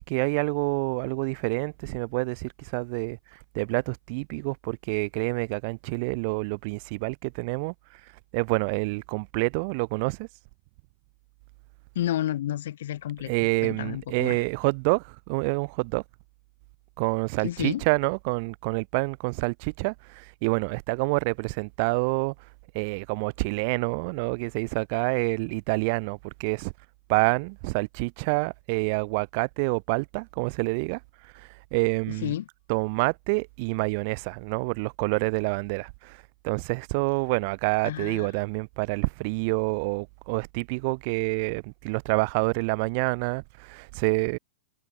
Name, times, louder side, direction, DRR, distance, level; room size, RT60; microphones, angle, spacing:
voice 1, 0.0-3.2 3.5-7.7 8.3-10.3 13.3-16.0 17.0-22.3 22.7-26.7 27.1-32.3 32.7-44.4, right 31 dB, 45° right, 0.6 m, -27 dB
voice 2, 12.0-13.3 13.6-14.4 17.4-17.8 32.1-32.5 37.8-38.3, left 12 dB, 70° left, 1.7 m, -30 dB
hypercardioid pair, 140°, 0 cm